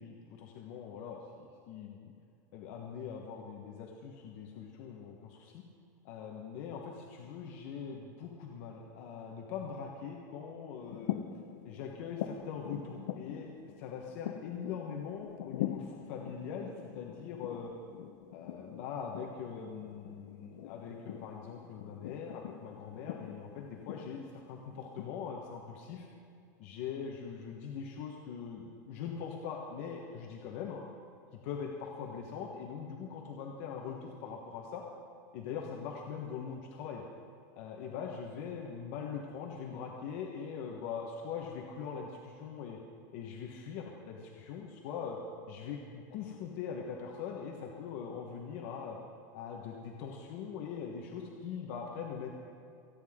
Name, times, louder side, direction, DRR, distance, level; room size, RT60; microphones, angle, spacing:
voice 1, 0.0-2.1 2.5-5.6 6.0-11.2 11.6-13.5 13.8-16.7 16.9-17.7 18.3-26.1 26.6-30.8 31.4-34.8 35.3-37.1 37.5-42.8 43.1-45.2 45.5-49.0 49.3-52.3, left 6 dB, 45° left, 0 dB, 1.2 m, -42 dB
sound 1, 10.8-25.1, left 12 dB, 65° left, 0.7 m, -43 dB
28.0 x 9.7 x 3.7 m, 2.5 s
supercardioid pair, 175°, 10 cm